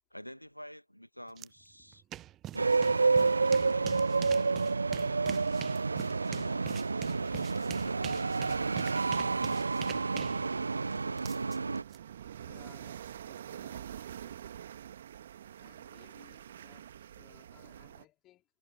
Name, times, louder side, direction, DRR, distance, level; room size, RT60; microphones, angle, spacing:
voice 1, 0.1-2.0 2.5-4.1 6.3-9.1, equal, 90° left, 1.6 m, -48 dB
sound 1, 1.4-1.5 1.8-12.0, right 13 dB, 15° right, 0.4 m, -45 dB
sound 2, 2.6-11.8, right 4 dB, 65° right, 0.6 m, -29 dB
sound 3, 7.0-18.1, right 10 dB, 40° right, 2.1 m, -47 dB
voice 2, 12.4-14.6 15.6-18.4, left 15 dB, 15° left, 4.7 m, -62 dB
figure-of-eight pair, 135°, 0 cm